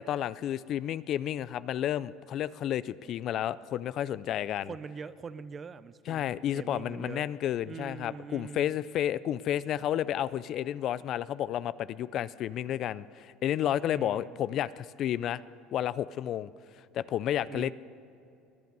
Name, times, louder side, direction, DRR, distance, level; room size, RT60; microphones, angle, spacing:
voice 1, 0.0-4.7 6.1-15.4 15.7-16.5 16.9-17.7, left 11 dB, 50° left, 18 dB, 0.3 m, -31 dB
voice 2, 4.6-7.3 7.6-8.8 13.9-14.4 17.5-17.7, right 5 dB, 30° right, 16 dB, 0.5 m, -43 dB
20.5 x 9.4 x 5.4 m, 2.6 s
supercardioid pair, 120°, 0 cm